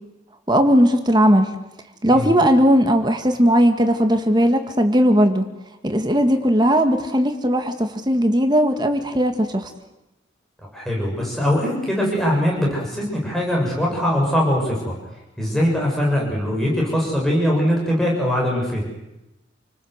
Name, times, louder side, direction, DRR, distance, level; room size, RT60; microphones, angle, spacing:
voice 1, 0.5-1.6 2.0-5.5 5.8-9.7, equal, 20° right, 6 dB, 1.9 m, -17 dB
voice 2, 10.7-14.9 15.4-18.9, equal, ahead, -3 dB, 7.5 m, -21 dB
29.0 x 19.5 x 8.1 m, 0.95 s
head